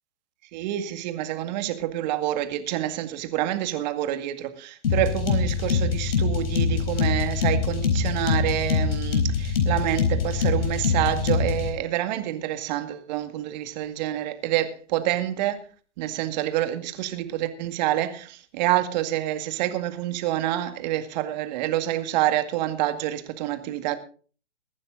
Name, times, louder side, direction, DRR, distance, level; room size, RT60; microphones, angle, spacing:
voice 1, 0.5-15.6 16.0-24.0, right 13 dB, 40° right, 2.0 m, -27 dB
sound 1, 4.8-11.7, left 5 dB, 50° left, 4.4 m, -24 dB
22.5 x 9.6 x 3.8 m
hypercardioid pair, 130°, 36 cm